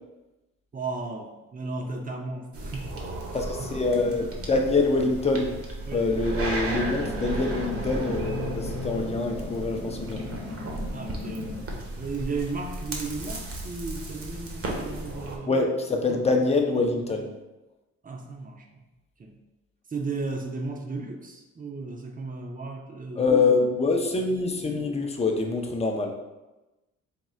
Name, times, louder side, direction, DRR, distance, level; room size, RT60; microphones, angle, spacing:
voice 1, 0.7-2.9 3.3-3.7 5.8-6.1 10.9-11.5 12.0-15.6 16.1-16.2 18.0-18.9 19.2-19.4 19.9-23.3, right 3 dB, 30° right, 3 dB, 0.6 m, -35 dB
sound 1, 2.5-15.4, right 2 dB, 50° right, 0.9 m, -34 dB
voice 2, 3.3-5.5 5.9-10.2 15.4-17.3 23.2-26.2, left 3 dB, 20° left, 3 dB, 0.6 m, -25 dB
sound 2, 6.7-11.7, left 3 dB, 70° left, 0.7 m, -37 dB
3.7 x 2.3 x 4.2 m, 1.1 s
cardioid pair, 90°, 30 cm